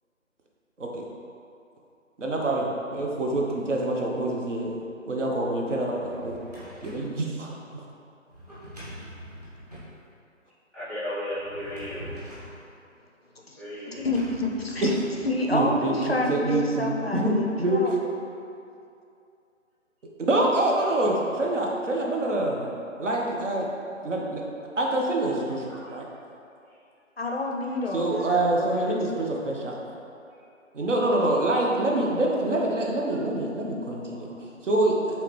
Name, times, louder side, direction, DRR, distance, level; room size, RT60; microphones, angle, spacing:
voice 1, 2.2-6.4 6.8-7.8 14.8-14.9 15.5-17.9 20.3-22.7 23.0-23.7 24.0-24.4 24.8-26.1 27.9-29.7 30.7-35.2, right 2 dB, 65° right, -1 dB, 0.9 m, -26 dB
Drawer open or close, 5.8-7.1 8.3-9.9 11.3-12.6 13.9-15.6, equal, 30° right, 1.0 m, -44 dB
voice 2, 10.7-12.2 13.5-14.1 24.7-24.8 25.7-25.8 26.6-26.7 30.3-30.4, left 1 dB, 10° right, -17 dB, 1.2 m, -35 dB
voice 3, 13.9-14.9 15.2-18.2 27.2-28.9, left 2 dB, 50° left, 0 dB, 0.5 m, -29 dB
4.5 x 3.5 x 3.1 m, 2.6 s
figure-of-eight pair, 175°, 40 cm